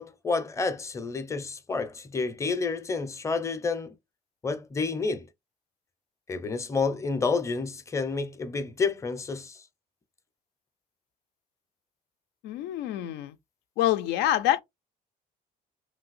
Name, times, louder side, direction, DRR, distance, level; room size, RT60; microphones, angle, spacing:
voice 1, 0.0-3.9 4.4-5.3 6.3-9.6, left 4 dB, 15° left, 0.5 m, -29 dB
voice 2, 12.4-13.4 13.8-14.6, left 13 dB, 85° left, 0.4 m, -26 dB
3.2 x 2.8 x 2.4 m
cardioid pair, 110°, 17 cm